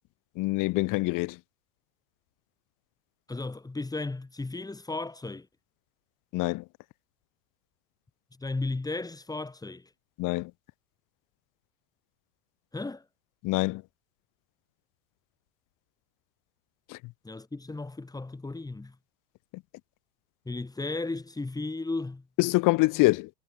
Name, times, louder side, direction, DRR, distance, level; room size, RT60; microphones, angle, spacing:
voice 1, 0.4-1.4 6.3-6.6 10.2-10.5 13.4-13.8 16.9-17.0 19.5-19.6 22.4-23.3, left 22 dB, 45° left, 1.2 m, -25 dB
voice 2, 3.3-5.5 8.4-9.9 12.7-13.0 17.2-19.0 20.5-22.2, left 3 dB, 10° left, 2.2 m, -35 dB
supercardioid pair, 120°, 45 cm